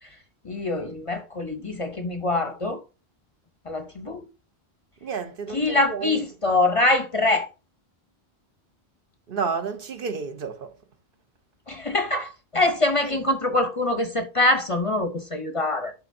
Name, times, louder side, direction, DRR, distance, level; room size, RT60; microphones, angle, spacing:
voice 1, 0.4-2.8 3.6-4.3 5.5-7.5 11.7-15.9, left 2 dB, 40° left, 0.6 m, -24 dB
voice 2, 5.0-6.2 9.3-10.7 13.1-13.2, right 5 dB, 60° right, 0.9 m, -31 dB
11.0 x 3.9 x 2.6 m
omnidirectional pair, 1.0 m